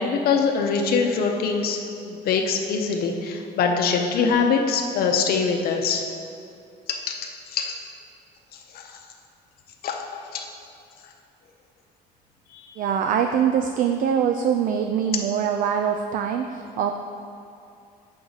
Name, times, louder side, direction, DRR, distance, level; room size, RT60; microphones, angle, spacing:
voice 1, 0.0-1.8 2.0-6.0 6.9-7.8 8.7-8.9 9.8-10.5 12.5-12.7, left 5 dB, 65° left, 3 dB, 0.7 m, -23 dB
voice 2, 12.8-16.9, right 8 dB, 55° right, 5 dB, 0.4 m, -23 dB
6.4 x 6.0 x 3.9 m, 2.5 s
cardioid pair, 110°, 17 cm